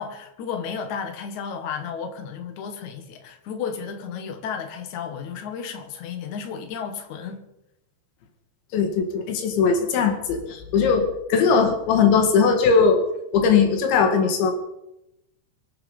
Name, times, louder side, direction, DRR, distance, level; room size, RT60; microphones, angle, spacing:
voice 1, 0.0-7.4, left 6 dB, 55° left, 5 dB, 2.6 m, -33 dB
voice 2, 8.7-13.0 13.3-14.5, left 5 dB, 80° left, 4 dB, 4.4 m, -19 dB
24.5 x 9.5 x 5.6 m, 0.87 s
omnidirectional pair, 5.1 m